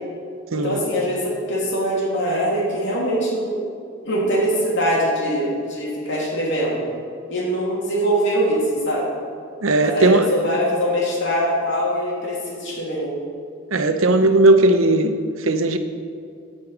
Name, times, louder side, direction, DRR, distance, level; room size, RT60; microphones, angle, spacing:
voice 1, 0.5-3.6 4.0-6.8 7.3-9.0 9.8-13.1, equal, 55° left, -4 dB, 2.8 m, -22 dB
voice 2, 9.6-10.3 13.7-15.8, right 2 dB, 65° right, 8 dB, 0.7 m, -17 dB
10.5 x 5.3 x 8.3 m, 2.3 s
head